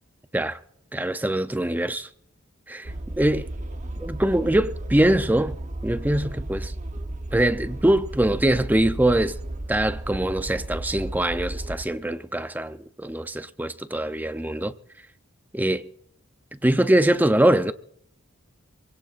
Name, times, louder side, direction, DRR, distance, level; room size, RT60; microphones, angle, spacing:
voice 1, 0.9-2.1 2.7-3.5 4.0-5.6 5.8-6.7 7.3-9.4 9.7-14.7 15.5-15.9 16.6-17.7, right 1 dB, 10° right, 0.6 m, -23 dB
sound 1, 2.8-11.8, right 1 dB, 35° right, 1.0 m, -34 dB
27.5 x 17.0 x 2.5 m
head